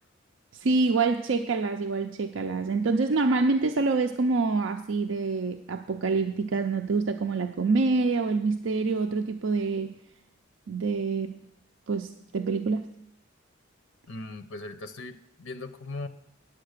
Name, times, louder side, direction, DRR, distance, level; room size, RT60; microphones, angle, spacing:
voice 1, 0.5-9.9 10.7-11.4 11.9-12.9, right 3 dB, 75° right, 5 dB, 0.5 m, -26 dB
voice 2, 14.1-16.1, left 2 dB, 85° left, 11 dB, 0.6 m, -39 dB
9.6 x 7.7 x 6.5 m, 0.78 s
head